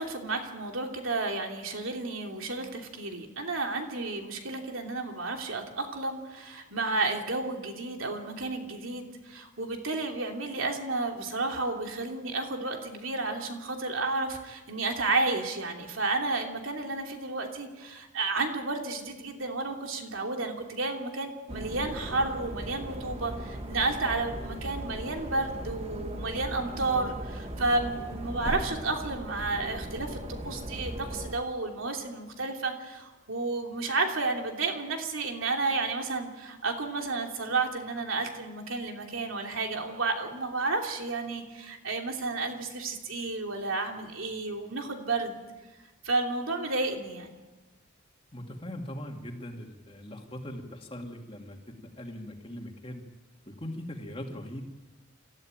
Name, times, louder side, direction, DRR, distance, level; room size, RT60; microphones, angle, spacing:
voice 1, 0.0-45.4 46.0-47.3, right 3 dB, 80° right, 3 dB, 3.0 m, -32 dB
sound 1, 21.5-31.3, right 1 dB, 30° right, 1.4 m, -38 dB
voice 2, 48.3-51.6 52.0-53.0 53.5-54.6, left 1 dB, 25° left, 2 dB, 2.4 m, -40 dB
27.0 x 14.0 x 9.1 m, 1.2 s
head